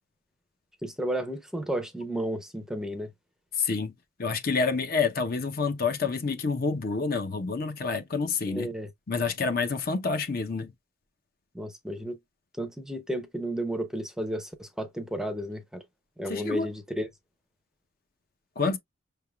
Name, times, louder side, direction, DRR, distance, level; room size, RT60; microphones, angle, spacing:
voice 1, 0.8-3.1 8.4-8.9 11.5-12.2 12.6-15.8 16.2-17.1, right 1 dB, 5° right, 0.5 m, -33 dB
voice 2, 3.6-3.9 4.2-8.7 9.1-10.7 16.3-16.7 18.6-18.8, left 4 dB, 45° left, 0.7 m, -28 dB
5.7 x 3.4 x 2.2 m
head